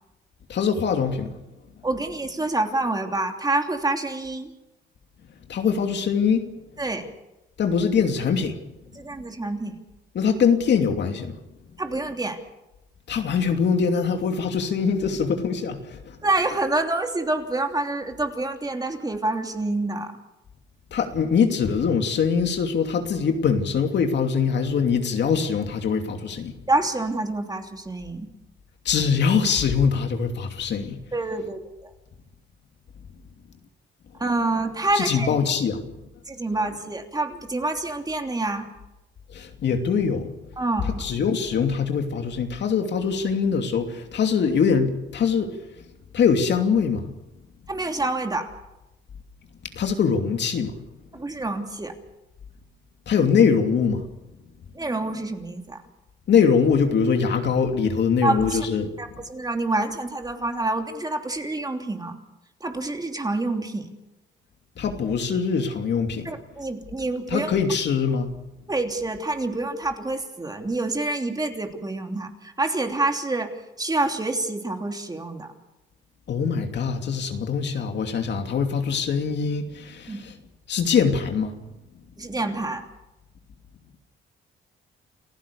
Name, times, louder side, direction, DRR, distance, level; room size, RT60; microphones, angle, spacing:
voice 1, 0.5-1.4 5.5-6.5 7.6-8.6 10.1-11.3 13.1-16.2 20.9-26.5 28.8-31.0 34.9-35.8 39.3-40.3 40.8-45.6 46.1-47.1 49.7-50.8 53.1-54.0 56.3-58.9 64.8-66.3 67.3-68.3 76.3-80.4 80.7-81.6, left 6 dB, 60° left, 2.8 m, -23 dB
voice 2, 1.8-4.5 6.8-7.0 9.0-9.8 11.8-12.4 16.2-20.1 26.7-28.3 31.1-31.6 34.2-35.4 36.3-38.6 40.6-40.9 47.7-48.5 51.1-51.9 54.7-55.8 58.2-58.7 59.0-62.2 62.6-63.9 66.2-67.5 68.7-73.5 73.8-75.5 80.1-80.2 82.2-82.8, right 2 dB, 20° right, 3.0 m, -27 dB
29.5 x 15.5 x 7.0 m
cardioid pair, 90°, 20 cm